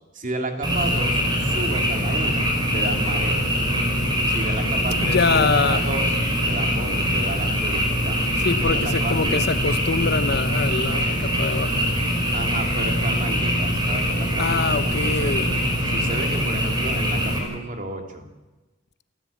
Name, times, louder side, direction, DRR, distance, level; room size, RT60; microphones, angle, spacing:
voice 1, 0.1-3.6 4.3-6.1 6.4-9.6 12.3-15.3 15.8-18.3, right 2 dB, 40° right, 2.8 m, -32 dB
Frog, 0.6-17.4, equal, 20° right, 5.2 m, -23 dB
voice 2, 5.0-5.9 8.4-11.8 14.4-15.6, left 4 dB, 50° left, 0.9 m, -24 dB
28.5 x 14.0 x 8.5 m
head